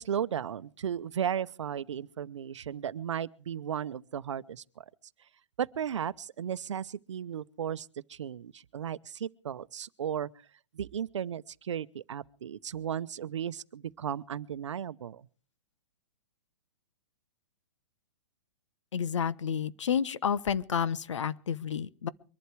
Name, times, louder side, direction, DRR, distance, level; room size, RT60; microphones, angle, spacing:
voice 1, 0.0-4.8 5.6-10.3 10.7-15.3, right 9 dB, 80° right, 0.8 m, -35 dB
voice 2, 18.9-22.1, left 7 dB, 85° left, 1.0 m, -30 dB
23.5 x 11.5 x 4.7 m
hypercardioid pair, 175°, 15 cm